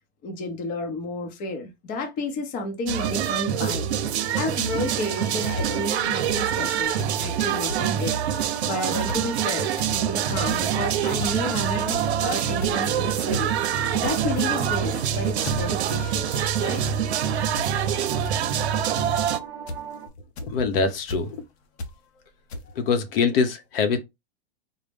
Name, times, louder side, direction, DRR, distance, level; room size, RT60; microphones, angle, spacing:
voice 1, 0.2-3.9 4.3-8.2 8.6-13.5 13.9-16.8, left 2 dB, 25° left, 0.7 m, -31 dB
sound 1, 2.9-19.4, right 9 dB, 85° right, 0.6 m, -25 dB
sound 2, 4.0-20.1, right 7 dB, 10° right, 0.7 m, -40 dB
sound 3, 5.6-5.7 6.3-6.4 7.0-7.2 7.4-7.5 7.7-7.8 8.4-8.6 9.0-9.2 9.6-9.9 10.3-10.6 11.2-11.5 11.9-12.2 12.6-12.9 13.3-13.5 13.8-14.1 14.6-15.0 15.4-15.6 16.1-16.3 16.6-17.0 17.6-17.7 18.2-18.4 19.0-19.2 19.7-19.9 20.4-20.5 21.1-21.2 21.8-21.9 22.5-22.6, left 1 dB, 85° left, 0.9 m, -35 dB
voice 2, 20.4-21.4 22.7-24.0, left 5 dB, 60° left, 0.8 m, -24 dB
4.0 x 2.1 x 3.4 m
supercardioid pair, 150°, 32 cm